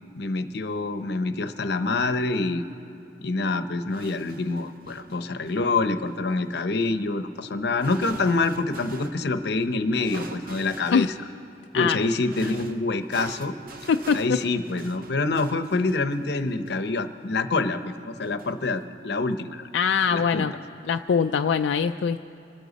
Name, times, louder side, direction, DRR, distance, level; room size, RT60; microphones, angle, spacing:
voice 1, 0.1-2.6 3.2-11.1 11.7-13.5 14.1-19.7 20.1-20.5, left 3 dB, 65° left, 10 dB, 0.8 m, -26 dB
sound 1, 3.9-9.3 10.0-11.2 12.0-17.2 18.2-18.9, right 2 dB, 50° right, 0.8 m, -44 dB
voice 2, 13.9-14.4 19.7-20.5 20.9-22.2, left 6 dB, 85° left, 6 dB, 0.4 m, -22 dB
26.5 x 13.0 x 4.1 m, 2.8 s
head